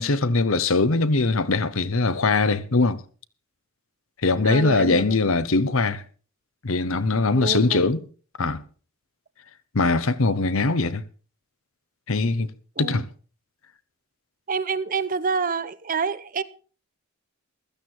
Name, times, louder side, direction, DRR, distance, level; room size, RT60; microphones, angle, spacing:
voice 1, 0.0-3.0 4.2-6.0 6.6-8.0 8.4-8.6 9.7-11.0 12.1-12.5 12.8-13.1, left 3 dB, 70° left, 0.9 m, -21 dB
voice 2, 4.4-5.2 7.4-7.8 12.8-13.0 14.5-16.4, right 5 dB, 40° right, 0.7 m, -27 dB
15.5 x 13.0 x 4.5 m
head